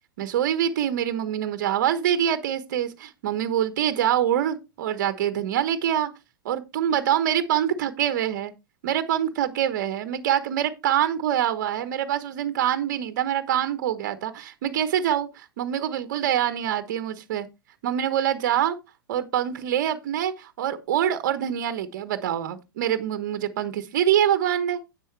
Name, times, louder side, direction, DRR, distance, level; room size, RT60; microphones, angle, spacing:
voice 1, 0.2-6.1 6.4-8.5 8.8-17.5 17.8-18.8 19.1-24.8, right 10 dB, 55° right, 1.2 m, -25 dB
10.0 x 7.8 x 3.3 m
figure-of-eight pair, 105°, 11 cm